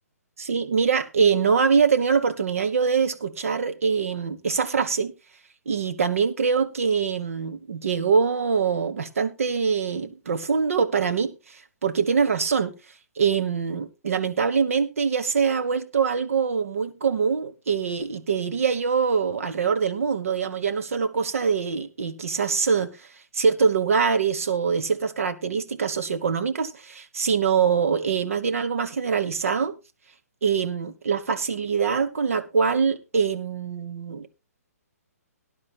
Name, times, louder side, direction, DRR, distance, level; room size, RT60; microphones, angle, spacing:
voice 1, 0.4-5.1 5.7-11.3 11.8-12.7 13.2-22.9 23.3-29.7 30.4-34.3, right 6 dB, 60° right, 1.3 m, -24 dB
18.5 x 11.0 x 2.3 m
figure-of-eight pair, 130°, 9 cm